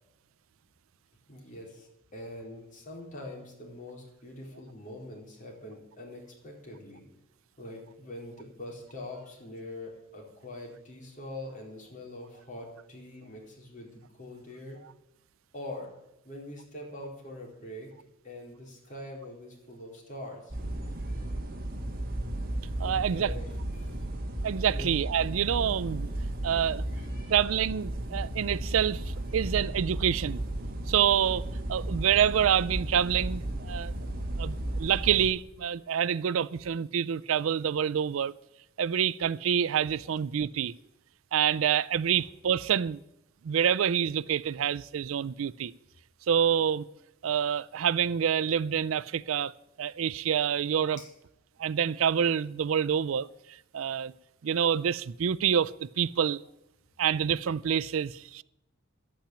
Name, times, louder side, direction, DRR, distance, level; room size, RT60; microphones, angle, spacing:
voice 1, 1.3-7.1 7.6-14.8 15.5-15.9 16.2-17.9 18.2-21.4 22.8-24.0 24.7-24.9 26.9-27.4 29.3-29.4 51.0-51.1, left 1 dB, 40° left, 4.1 m, -44 dB
sound 1, 20.5-35.3, right 1 dB, 45° right, 1.8 m, -34 dB
voice 2, 22.8-23.3 24.4-26.1 26.4-26.8 27.3-30.4 30.9-33.9 34.4-38.3 38.8-40.7 41.3-43.0 43.4-45.7 46.3-46.9 47.2-49.5 49.8-51.0 51.6-53.3 53.7-54.1 54.4-56.4 57.0-58.4, right 8 dB, 80° right, 0.4 m, -27 dB
11.5 x 8.7 x 8.7 m
head